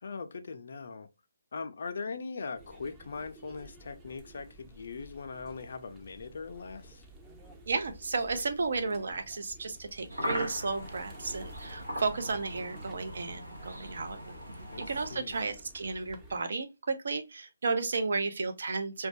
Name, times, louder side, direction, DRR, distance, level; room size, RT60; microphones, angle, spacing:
voice 1, 0.0-1.1 1.5-7.0 14.7-15.4, left 4 dB, 60° left, 0.4 m, -40 dB
sound 1, 2.5-16.4, right 1 dB, 15° right, 0.4 m, -53 dB
voice 2, 7.7-14.4 14.9-19.1, right 4 dB, 65° right, 0.5 m, -33 dB
sound 2, 10.1-15.2, equal, 90° right, 0.8 m, -39 dB
2.2 x 2.2 x 2.5 m
hypercardioid pair, 155°, 0 cm